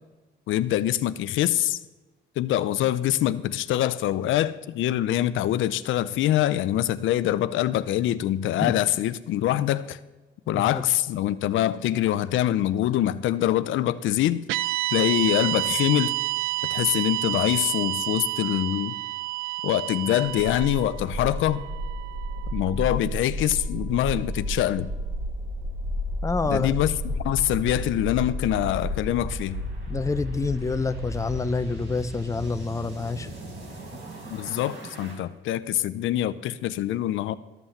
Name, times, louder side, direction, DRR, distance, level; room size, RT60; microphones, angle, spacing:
voice 1, 0.5-1.8 2.4-10.0 10.5-14.4 14.9-16.1 16.7-19.0 19.6-21.6 22.5-24.9 26.5-29.6 34.3-37.3, left 12 dB, 80° left, 0.5 m, -24 dB
sound 1, 14.5-22.8, right 20 dB, 90° right, 0.4 m, -29 dB
sound 2, 20.2-35.1, equal, 65° right, 4.4 m, -33 dB
voice 2, 26.2-26.7 29.9-33.3, left 4 dB, 15° left, 0.6 m, -27 dB
13.0 x 5.6 x 7.2 m
cardioid pair, 90°, 20 cm